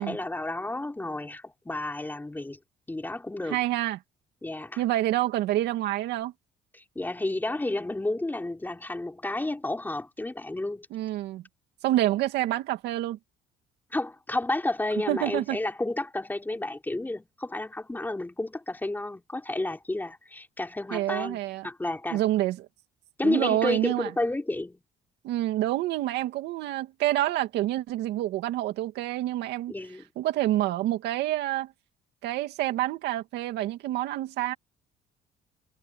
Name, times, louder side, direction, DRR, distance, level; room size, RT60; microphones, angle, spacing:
voice 1, 0.0-2.6 2.9-3.6 4.4-4.8 6.7-10.9 13.9-22.2 23.2-24.8 29.7-30.1, left 2 dB, 10° left, 4.5 m, -31 dB
voice 2, 3.5-4.0 4.8-6.3 10.9-11.4 11.8-13.2 15.1-15.6 20.9-21.7 22.1-22.7 23.2-24.1 25.2-29.7 30.2-31.7 32.2-34.5, right 14 dB, 80° right, 2.5 m, -27 dB
cardioid pair, 110°, 17 cm